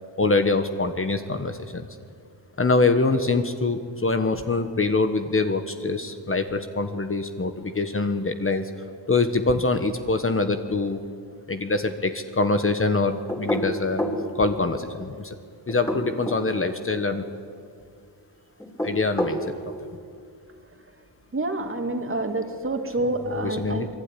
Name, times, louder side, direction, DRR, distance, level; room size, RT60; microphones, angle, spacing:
voice 1, 0.2-1.9 2.6-8.7 9.1-11.0 11.5-14.0 14.3-15.4 15.7-17.3 18.8-19.7 23.3-23.9, left 3 dB, 25° left, 7 dB, 1.3 m, -24 dB
sound 1, 13.3-14.2 15.7-16.5 18.6-19.4, equal, 5° left, 3.6 m, -27 dB
voice 2, 21.3-23.9, right 2 dB, 25° right, 5 dB, 2.5 m, -27 dB
27.5 x 21.5 x 9.9 m, 2.2 s
wide cardioid pair, 145°, 47 cm